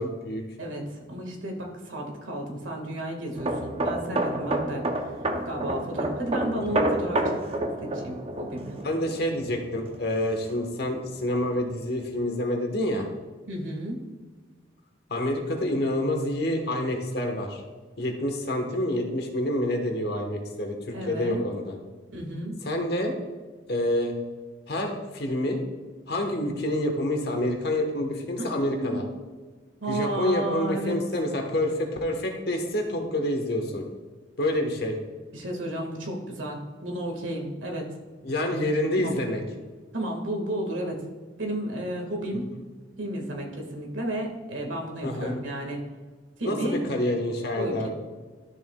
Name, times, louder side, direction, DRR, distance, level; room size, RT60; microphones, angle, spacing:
voice 1, 0.0-0.4 6.7-6.8 8.8-13.1 15.1-17.6 18.0-21.8 22.6-23.1 23.7-24.1 24.7-25.6 26.1-29.0 29.9-33.8 34.4-35.0 38.2-39.4 45.0-45.4 46.4-47.9, left 1 dB, 55° left, 3 dB, 1.2 m, -27 dB
voice 2, 0.6-5.1 5.4-7.2 7.8-8.8 13.5-14.0 20.9-21.4 22.1-22.5 28.5-29.1 29.8-31.0 35.3-37.9 39.0-39.1 39.9-41.0 41.4-42.5 43.0-45.8 46.4-46.8 47.5-47.9, right 1 dB, 85° right, 2 dB, 1.7 m, -32 dB
sound 1, 3.3-10.8 11.1-11.4, right 1 dB, 30° right, 0.6 m, -29 dB
12.5 x 6.8 x 2.3 m, 1.4 s
head